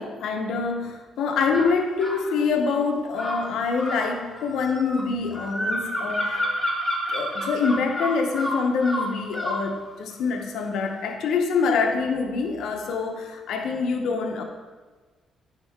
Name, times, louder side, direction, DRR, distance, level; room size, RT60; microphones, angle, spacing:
voice 1, 0.0-6.5 7.1-14.4, left 4 dB, 75° left, 4 dB, 0.8 m, -25 dB
sound 1, 1.5-2.2 3.1-9.7, equal, 15° left, 1.4 m, -29 dB
9.7 x 3.7 x 3.6 m, 1.4 s
cardioid pair, 90°, 0 cm